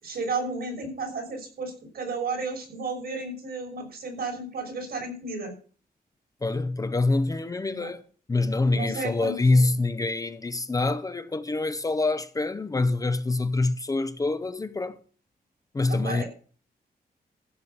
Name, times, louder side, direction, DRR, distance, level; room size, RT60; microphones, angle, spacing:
voice 1, 0.0-5.5 7.7-7.9 8.7-9.6 15.9-16.2, right 3 dB, 70° right, 6.1 m, -33 dB
voice 2, 6.4-8.0 8.3-15.0 15.7-16.2, left 2 dB, 20° left, 0.6 m, -25 dB
15.5 x 6.3 x 7.0 m
wide cardioid pair, 165°, 16 cm